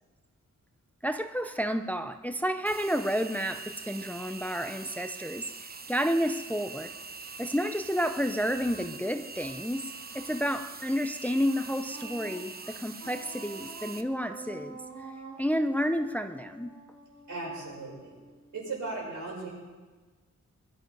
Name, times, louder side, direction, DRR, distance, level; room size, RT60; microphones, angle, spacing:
voice 1, 1.0-6.9 7.4-14.8 15.4-16.8, equal, 5° left, 8 dB, 0.5 m, -30 dB
sound 1, 2.7-14.0, right 4 dB, 30° right, 0.8 m, -43 dB
Wind instrument woodwind instrument, 11.9-18.8, right 3 dB, 60° right, 5.3 m, -48 dB
voice 2, 17.3-18.1 18.5-19.5, right 3 dB, 85° right, -3 dB, 6.4 m, -37 dB
21.5 x 12.0 x 5.4 m, 1.3 s
wide cardioid pair, 155°, 30 cm